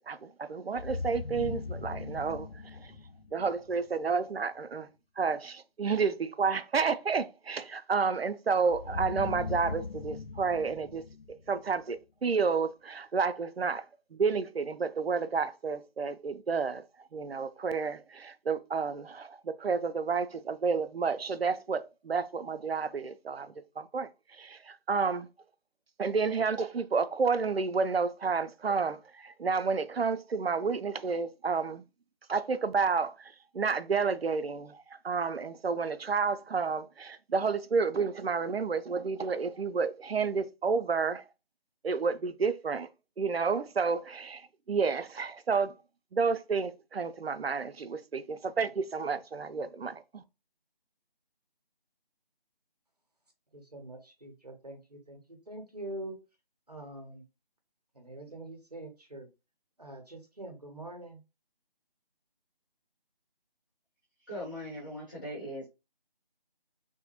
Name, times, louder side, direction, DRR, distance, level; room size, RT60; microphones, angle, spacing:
voice 1, 0.1-2.9 3.3-4.9 5.2-11.1 11.5-13.8 14.1-25.3 26.0-31.8 32.3-41.3 41.8-42.9 43.2-45.7 46.1-50.2, right 5 dB, 85° right, 0.5 m, -30 dB
sound 1, 0.8-3.7 8.7-11.9, left 4 dB, 70° left, 0.5 m, -39 dB
voice 2, 53.5-56.2 56.7-57.2 58.0-59.3 59.8-61.2, right 1 dB, 40° right, 0.8 m, -44 dB
voice 3, 64.3-65.7, equal, 20° left, 1.0 m, -39 dB
3.4 x 2.1 x 2.8 m
figure-of-eight pair, 165°, 30 cm